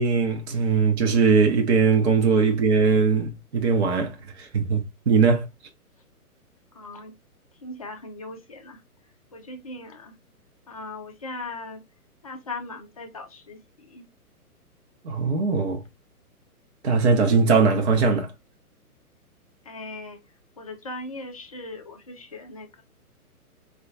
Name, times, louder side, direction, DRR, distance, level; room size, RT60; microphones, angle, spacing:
voice 1, 0.0-5.4 15.0-15.8 16.8-18.3, right 5 dB, 45° right, 0.8 m, -20 dB
voice 2, 6.7-7.2 7.6-8.8 9.3-10.1 10.7-11.8 12.2-14.0 19.6-20.2 20.6-22.8, left 2 dB, 25° left, 0.4 m, -39 dB
4.4 x 2.3 x 2.4 m
figure-of-eight pair, 125°, 46 cm